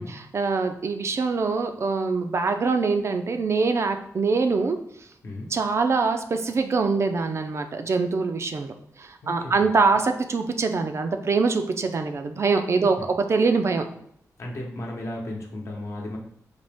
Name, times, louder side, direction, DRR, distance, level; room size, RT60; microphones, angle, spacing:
voice 1, 0.0-4.8 5.5-8.7 9.0-13.0 13.3-13.9, right 4 dB, 45° right, 6 dB, 0.4 m, -24 dB
voice 2, 9.2-9.5 12.7-13.1 14.4-16.2, left 1 dB, 50° left, 0 dB, 0.9 m, -35 dB
4.0 x 2.9 x 3.4 m, 0.70 s
wide cardioid pair, 115°, 6 cm